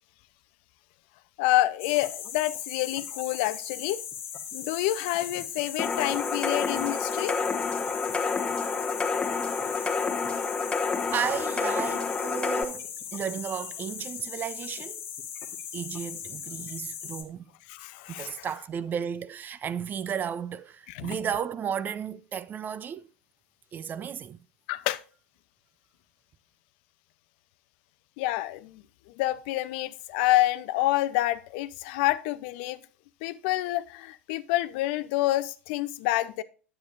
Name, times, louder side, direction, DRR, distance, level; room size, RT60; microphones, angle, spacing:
voice 1, 1.4-4.0 4.5-7.4 17.7-18.5 20.9-21.2 24.7-25.0 28.2-28.8 29.2-32.8 33.2-36.4, left 16 dB, 55° left, 0.6 m, -28 dB
sound 1, 1.8-17.2, left 8 dB, 35° left, 1.5 m, -39 dB
sound 2, 5.8-12.6, left 4 dB, 15° left, 1.3 m, -29 dB
voice 2, 11.1-15.0 15.7-17.5 18.1-23.1 23.7-24.4, right 8 dB, 30° right, 0.5 m, -33 dB
9.7 x 7.8 x 2.5 m
figure-of-eight pair, 85°, 7 cm